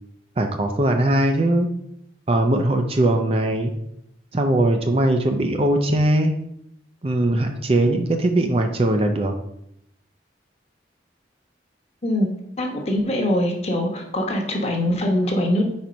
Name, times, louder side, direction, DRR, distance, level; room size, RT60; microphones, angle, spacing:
voice 1, 0.4-1.7 2.3-3.7 4.3-6.3 7.0-9.3, right 1 dB, 30° right, 5 dB, 0.5 m, -20 dB
voice 2, 12.6-15.7, left 1 dB, 35° left, 2 dB, 1.0 m, -22 dB
4.7 x 4.4 x 5.1 m, 0.77 s
head